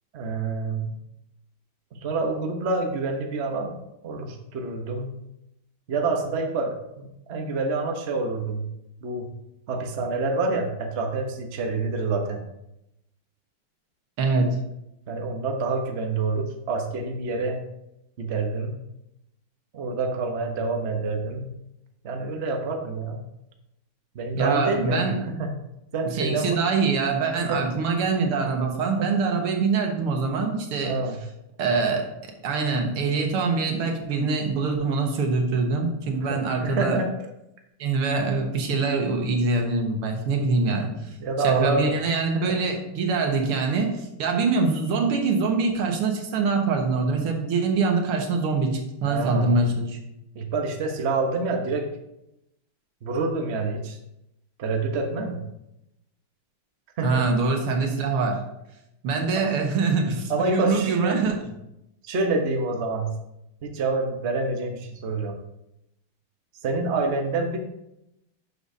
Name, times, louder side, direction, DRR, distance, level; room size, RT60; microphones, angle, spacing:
voice 1, 0.1-0.9 1.9-3.7 4.0-5.1 5.9-8.7 9.0-9.3 9.7-12.4 15.1-17.6 18.2-18.8 19.7-21.5 22.0-23.2 24.1-25.5 25.9-26.6 27.4-27.6 29.0-29.1 30.8-31.2 36.2-37.3 41.2-42.0 42.3-42.6 49.0-49.6 50.3-51.9 53.0-54.0 54.6-55.4 57.0-57.2 60.3-61.2 62.0-63.1 63.6-65.4 66.6-67.6, right 3 dB, 45° right, 3 dB, 0.9 m, -27 dB
voice 2, 14.2-14.6 24.4-25.2 26.2-30.9 31.6-32.1 32.4-37.0 37.8-41.2 41.4-50.0 57.0-58.4 59.0-61.4, right 4 dB, 80° right, 2 dB, 2.1 m, -24 dB
11.5 x 6.8 x 2.7 m, 0.85 s
omnidirectional pair, 2.4 m